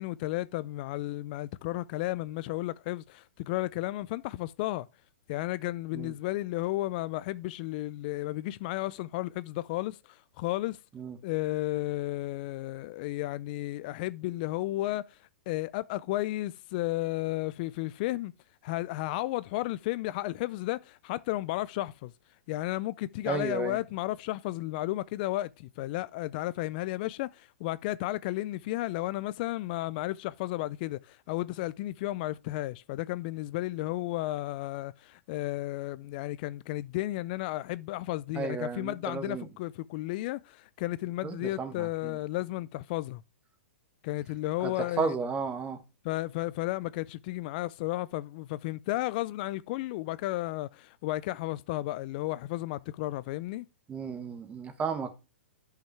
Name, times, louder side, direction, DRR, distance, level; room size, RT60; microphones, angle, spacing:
voice 1, 0.0-4.9 5.3-10.8 11.2-18.3 18.6-22.1 22.5-43.2 44.0-45.1 46.0-53.7, left 17 dB, 45° left, 0.4 m, -33 dB
voice 2, 23.3-23.8 38.3-39.5 41.2-42.1 44.6-45.8 53.9-55.1, right 5 dB, 20° right, 1.4 m, -33 dB
10.0 x 5.7 x 3.3 m
hypercardioid pair, 135°, 7 cm